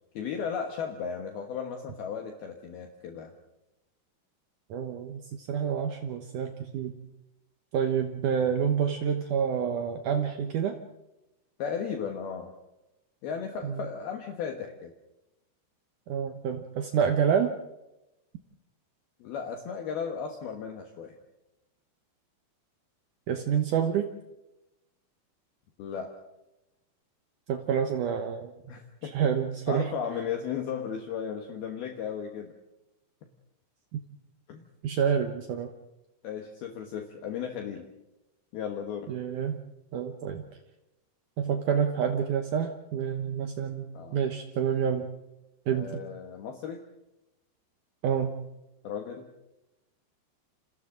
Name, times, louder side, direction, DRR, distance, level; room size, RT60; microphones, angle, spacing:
voice 1, 0.1-3.3 11.6-12.5 13.2-14.9 19.2-21.2 25.8-26.1 28.7-29.2 29.7-32.5 34.5-34.6 36.2-37.9 38.5-39.1 43.9-44.2 45.7-46.8 48.8-49.3, left 7 dB, 65° left, 4 dB, 3.0 m, -35 dB
voice 2, 4.7-7.0 7.7-10.8 13.6-13.8 16.1-17.5 23.3-24.1 27.5-28.5 29.1-29.9 34.8-35.7 39.1-39.6 39.9-40.4 41.4-45.1 45.7-46.0 48.0-48.3, right 7 dB, 85° right, 5 dB, 1.7 m, -28 dB
30.0 x 27.5 x 3.9 m, 0.95 s
omnidirectional pair, 5.4 m